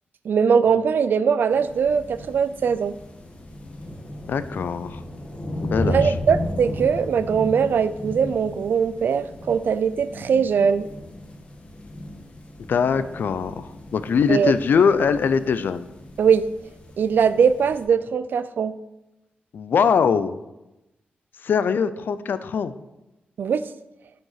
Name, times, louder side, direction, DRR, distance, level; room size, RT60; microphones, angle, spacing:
voice 1, 0.2-3.0 5.8-10.9 14.3-14.5 16.2-16.5 17.0-18.7 23.4-23.7, right 6 dB, 70° right, 14 dB, 0.5 m, -21 dB
sound 1, 1.5-17.8, left 1 dB, 35° left, 1.7 m, -35 dB
voice 2, 4.3-5.0 5.6-6.1 12.7-15.9 19.5-20.4 21.4-22.7, left 6 dB, 70° left, 13 dB, 0.6 m, -22 dB
10.5 x 5.5 x 5.8 m, 0.96 s
wide cardioid pair, 130°, 4 cm